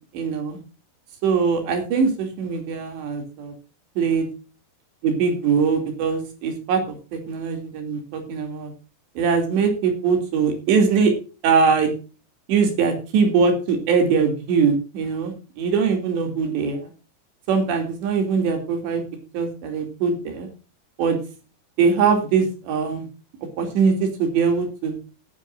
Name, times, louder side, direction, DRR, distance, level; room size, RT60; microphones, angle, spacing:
voice 1, 0.1-0.6 1.2-3.5 4.0-4.3 5.0-8.7 9.2-11.1 11.4-11.9 12.5-16.9 17.5-19.0 19.3-20.5 21.0-21.2 21.8-23.1 23.6-24.9, right 5 dB, 85° right, 4 dB, 4.9 m, -21 dB
17.5 x 9.6 x 2.5 m, 0.34 s
omnidirectional pair, 4.9 m